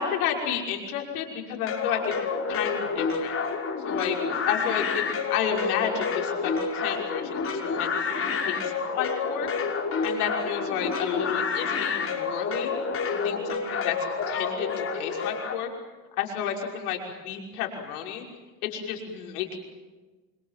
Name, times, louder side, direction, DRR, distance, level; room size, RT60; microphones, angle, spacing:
voice 1, 0.0-2.1 2.5-3.3 3.8-4.2 4.4-7.9 8.4-9.5 10.0-12.7 13.1-13.9 14.3-15.7 16.1-18.2 18.6-19.6, left 8 dB, 85° left, 2 dB, 5.9 m, -31 dB
sound 1, 1.7-15.5, left 5 dB, 30° left, 5.9 m, -29 dB
29.5 x 25.0 x 7.6 m, 1.2 s
supercardioid pair, 95°, 43 cm